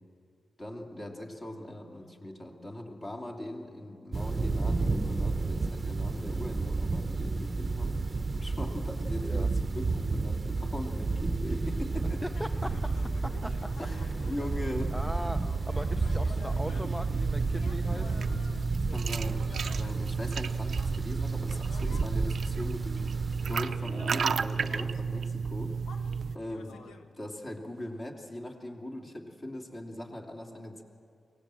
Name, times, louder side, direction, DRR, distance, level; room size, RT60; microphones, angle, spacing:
voice 1, 0.6-7.9 8.3-12.2 13.8-15.0 18.8-26.8 27.2-30.8, left 1 dB, 30° left, 1 dB, 2.8 m, -40 dB
sound 1, 4.1-23.6, right 3 dB, 30° right, 0.9 m, -31 dB
voice 2, 12.2-12.8 13.2-13.5 14.9-18.3, equal, 5° left, 7 dB, 0.6 m, -39 dB
sound 2, 12.3-22.1 22.5-27.2, left 4 dB, 85° left, 1.3 m, -51 dB
sound 3, 16.3-26.4, right 6 dB, 60° right, 0.6 m, -33 dB
24.0 x 18.5 x 7.6 m, 2.5 s
wide cardioid pair, 110°, 0 cm